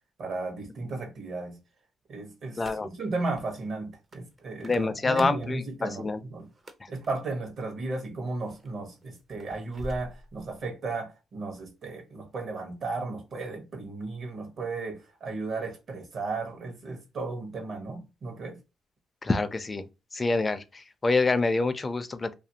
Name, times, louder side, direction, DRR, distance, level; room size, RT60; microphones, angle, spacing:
voice 1, 0.2-1.6 2.1-6.5 6.9-18.6, right 3 dB, 55° right, 0.9 m, -35 dB
sound 1, 2.5-3.1 3.4-3.5 4.1-5.5 6.4-7.1 7.8-8.1 8.5-10.7, right 1 dB, 35° right, 0.5 m, -45 dB
voice 2, 2.6-2.9 4.6-6.2 19.2-19.9 20.1-22.3, left 3 dB, 25° left, 0.4 m, -26 dB
2.6 x 2.5 x 2.7 m
cardioid pair, 90°, 0 cm